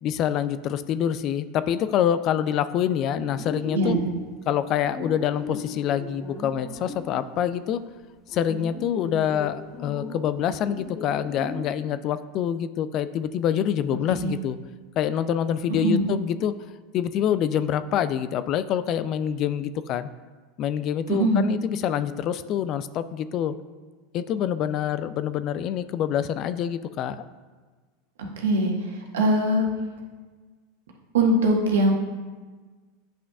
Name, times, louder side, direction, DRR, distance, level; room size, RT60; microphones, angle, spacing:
voice 1, 0.0-4.0 4.5-7.8 8.3-14.6 15.0-16.5 16.9-20.1 20.6-23.5 24.1-27.3, left 9 dB, 45° left, 14 dB, 0.3 m, -26 dB
sound 1, 3.1-7.7 8.3-11.7, left 1 dB, 15° left, 1.2 m, -37 dB
voice 2, 21.1-21.5 28.4-28.7 29.1-29.6 31.1-31.9, right 1 dB, 75° right, 0 dB, 1.4 m, -21 dB
9.8 x 5.7 x 2.4 m, 1.4 s
hypercardioid pair, 90°, 0 cm